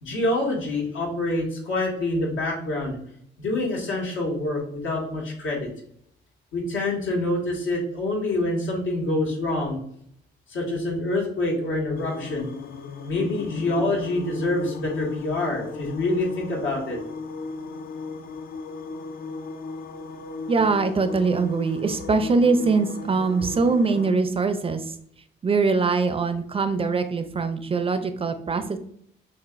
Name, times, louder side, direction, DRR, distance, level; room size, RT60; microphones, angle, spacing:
voice 1, 0.0-3.0 3.4-5.7 6.5-9.8 10.5-12.5 13.0-17.0, left 2 dB, 85° left, -2 dB, 1.7 m, -26 dB
sound 1, 12.0-24.1, left 4 dB, 50° left, 0.5 m, -37 dB
voice 2, 20.5-24.9 25.4-28.8, right 4 dB, 30° right, 9 dB, 0.5 m, -22 dB
5.9 x 2.5 x 2.5 m, 0.66 s
cardioid pair, 90°, 20 cm